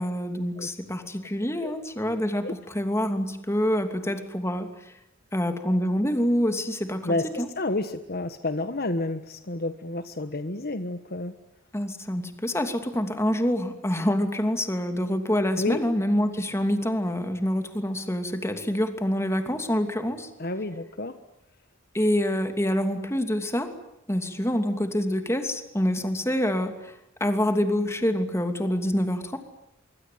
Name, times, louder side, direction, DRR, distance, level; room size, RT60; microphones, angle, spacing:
voice 1, 0.0-4.9 5.3-7.5 11.7-20.3 21.9-23.7 24.1-29.4, equal, 15° left, 7 dB, 2.8 m, -26 dB
voice 2, 7.0-11.3 15.6-15.8 20.4-21.2, left 2 dB, 50° left, 10 dB, 1.3 m, -30 dB
25.0 x 24.5 x 9.5 m, 0.82 s
head